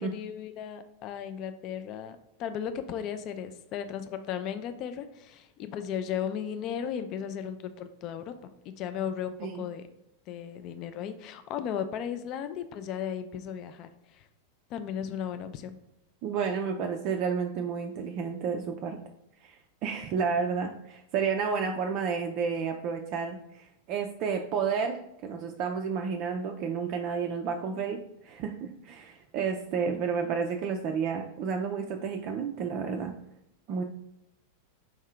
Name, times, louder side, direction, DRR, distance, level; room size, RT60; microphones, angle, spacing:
voice 1, 0.0-9.8 10.3-14.3 14.7-15.8, left 8 dB, 40° left, 9 dB, 0.3 m, -36 dB
voice 2, 16.2-19.0 19.4-19.6 19.8-28.0 28.2-33.1 33.7-33.8, right 6 dB, 40° right, 3 dB, 0.3 m, -31 dB
4.8 x 2.7 x 3.3 m, 0.84 s
figure-of-eight pair, 90°, 0 cm